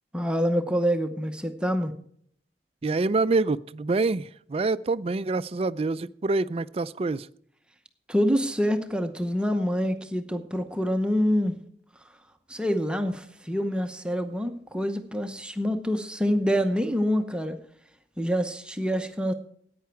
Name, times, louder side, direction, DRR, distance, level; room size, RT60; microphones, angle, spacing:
voice 1, 0.1-1.9 8.1-11.6 12.5-17.6 18.2-19.3, equal, 5° right, 0.8 m, -26 dB
voice 2, 2.8-7.3, right 3 dB, 35° right, 0.4 m, -26 dB
14.0 x 9.5 x 4.6 m
head